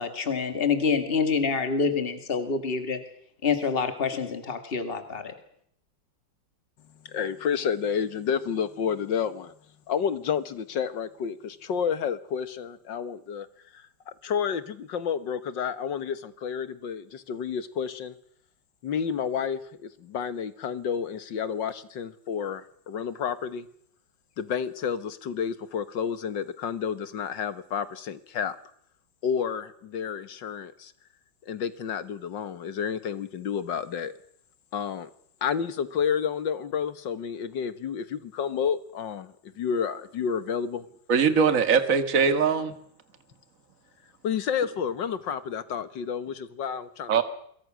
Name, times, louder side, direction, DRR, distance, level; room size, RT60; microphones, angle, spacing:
voice 1, 0.0-3.0 3.4-5.3, left 5 dB, 30° left, 8 dB, 2.3 m, -27 dB
voice 2, 7.1-9.5 9.9-13.5 13.7-18.2 18.8-23.7 24.4-28.6 29.2-30.9 31.4-34.1 34.7-35.1 35.4-40.8 44.2-47.2, left 7 dB, 80° left, 13 dB, 2.1 m, -30 dB
voice 3, 41.1-42.7 47.1-47.2, right 6 dB, 45° right, 10 dB, 2.1 m, -21 dB
26.0 x 22.5 x 6.3 m, 0.68 s
omnidirectional pair, 2.0 m